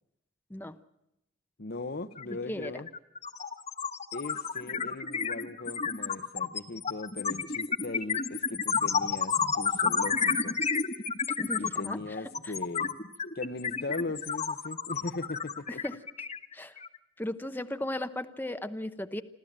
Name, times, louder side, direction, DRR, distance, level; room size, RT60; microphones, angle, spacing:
voice 1, 1.6-2.9 4.1-10.6 11.6-12.9 13.4-15.8, left 3 dB, 55° left, 0.9 m, -38 dB
sound 1, 2.2-2.3 2.6-17.0, left 5 dB, 35° left, 1.3 m, -31 dB
voice 2, 2.3-2.8 11.4-12.0 12.4-12.5 15.7-16.0 16.5-16.8 17.2-19.2, left 1 dB, 10° left, 0.8 m, -36 dB
27.0 x 13.5 x 8.7 m
head